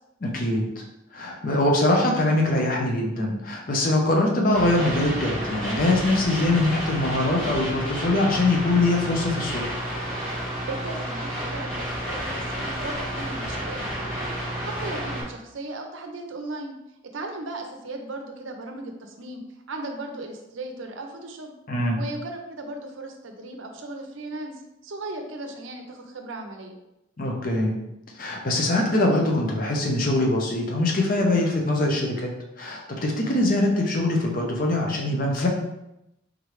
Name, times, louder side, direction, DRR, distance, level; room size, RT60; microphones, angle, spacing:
voice 1, 0.2-0.8 1.1-9.6 21.7-22.0 27.2-27.8 28.2-32.3 32.6-35.5, left 2 dB, 40° left, 0 dB, 0.6 m, -23 dB
sound 1, 4.5-15.2, equal, 5° left, 1.4 m, -31 dB
voice 2, 10.6-16.8 17.0-19.4 19.7-21.5 22.0-26.8, right 2 dB, 70° right, 3 dB, 0.6 m, -37 dB
3.7 x 3.1 x 3.1 m, 0.88 s
head